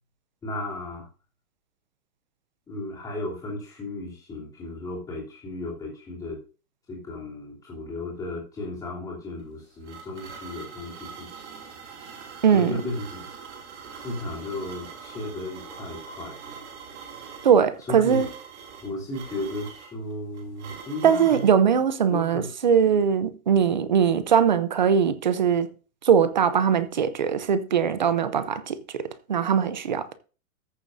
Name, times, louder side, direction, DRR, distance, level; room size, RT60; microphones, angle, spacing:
voice 1, 0.4-1.1 2.7-6.4 6.9-11.5 12.5-13.2 14.0-16.6 17.9-18.2 18.8-21.4 22.1-22.5, left 2 dB, 10° left, 3.0 m, -34 dB
sound 1, 9.4-21.5, right 6 dB, 50° right, 2.7 m, -43 dB
voice 2, 12.4-12.8 17.4-18.3 21.0-25.7 26.0-30.1, right 7 dB, 35° right, 0.5 m, -21 dB
14.0 x 7.0 x 2.6 m
hypercardioid pair, 175°, 44 cm